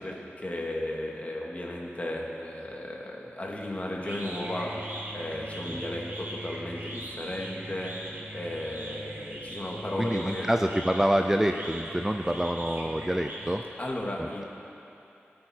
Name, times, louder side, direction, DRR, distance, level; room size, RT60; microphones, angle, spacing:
voice 1, 0.0-8.0 8.3-10.5 13.8-14.4, left 1 dB, 35° left, -2 dB, 2.4 m, -35 dB
sound 1, 3.6-13.9, right 1 dB, 55° right, 2.6 m, -41 dB
voice 2, 10.0-13.6 14.2-14.4, equal, 10° right, 5 dB, 0.6 m, -27 dB
23.5 x 8.7 x 4.6 m, 2.8 s
wide cardioid pair, 60°, 4 cm